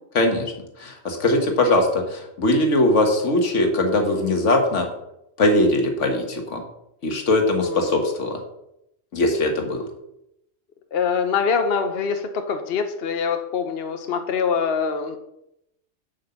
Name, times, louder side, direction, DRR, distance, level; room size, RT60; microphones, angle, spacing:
voice 1, 0.2-0.5 0.8-4.9 5.4-6.6 7.0-8.4 9.1-9.8, left 2 dB, 80° left, 3 dB, 1.8 m, -20 dB
voice 2, 7.6-8.0 10.9-15.2, left 6 dB, 60° left, 7 dB, 1.0 m, -24 dB
7.8 x 5.4 x 6.9 m, 0.82 s
omnidirectional pair, 1.2 m